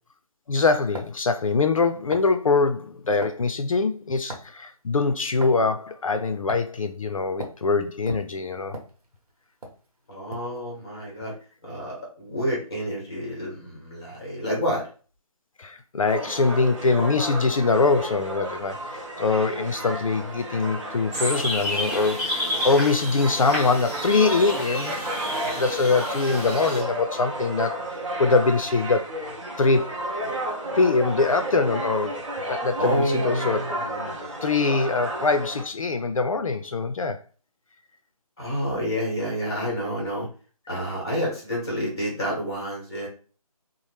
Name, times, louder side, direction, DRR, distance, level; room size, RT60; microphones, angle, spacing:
voice 1, 0.5-8.8 15.6-24.9 25.6-27.8 28.2-29.0 29.6-29.9 30.8-33.6 34.4-37.2, left 4 dB, 60° left, 0.4 m, -23 dB
sound 1, 0.9-1.2 2.1-2.3 3.2-3.4 4.3-4.6 5.4-5.6 6.5-6.8 7.4-7.6 8.1-9.3 9.6-9.8 10.3-10.6, right 1 dB, 75° right, 1.0 m, -37 dB
voice 2, 10.1-11.3 11.6-14.8 32.8-34.3 38.4-40.3 40.7-43.1, equal, 10° left, 0.6 m, -29 dB
sound 2, 16.1-35.6, right 1 dB, 55° right, 0.8 m, -33 dB
sound 3, 21.1-26.8, equal, 20° right, 1.0 m, -30 dB
2.8 x 2.0 x 3.2 m
figure-of-eight pair, 170°, 19 cm